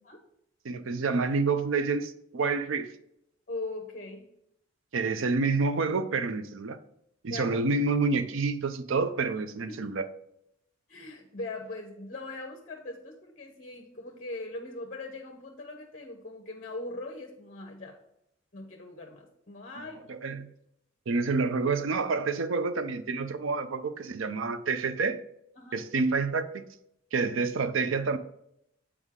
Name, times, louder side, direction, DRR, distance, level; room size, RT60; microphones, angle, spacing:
voice 1, 0.6-2.9 4.9-6.8 7.2-10.1 20.1-20.5 21.1-25.2 25.7-26.6 27.1-28.2, right 4 dB, 70° right, 0.5 m, -28 dB
voice 2, 3.5-4.2 7.3-7.6 9.7-9.9 10.9-18.0 18.5-20.0 25.6-25.8, left 2 dB, 40° left, 0.7 m, -40 dB
8.1 x 4.8 x 3.7 m
head